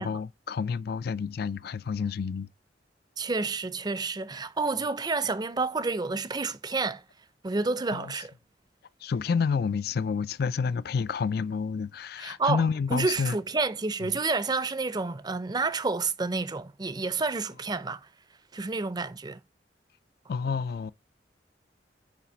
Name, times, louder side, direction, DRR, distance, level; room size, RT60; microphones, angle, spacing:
voice 1, 0.0-2.5 7.9-8.1 9.0-13.4 20.3-20.9, left 5 dB, 60° left, 0.4 m, -29 dB
voice 2, 3.2-7.0 7.4-8.3 12.2-12.6 12.9-18.0 18.5-19.4, right 3 dB, 25° right, 0.5 m, -29 dB
5.7 x 4.9 x 6.1 m
head